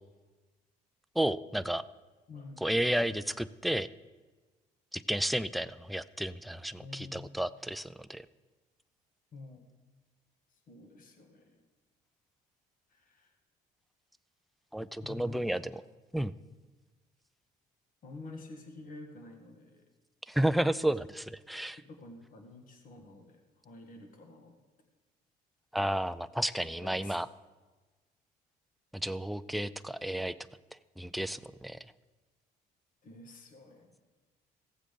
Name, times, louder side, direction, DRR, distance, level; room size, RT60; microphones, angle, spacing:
voice 1, 1.2-1.8 2.6-3.9 4.9-8.3 14.7-15.6 16.1-16.3 20.3-21.8 25.7-27.3 28.9-30.3 31.0-31.8, right 1 dB, ahead, 13 dB, 0.3 m, -32 dB
voice 2, 2.3-2.7 6.8-7.4 9.3-9.6 10.5-11.6 12.9-13.4 15.0-15.6 18.0-19.8 21.9-24.5 26.6-27.3 33.0-34.0, left 2 dB, 55° left, 4 dB, 1.7 m, -49 dB
15.5 x 7.5 x 5.2 m, 1.2 s
cardioid pair, 110°, 17 cm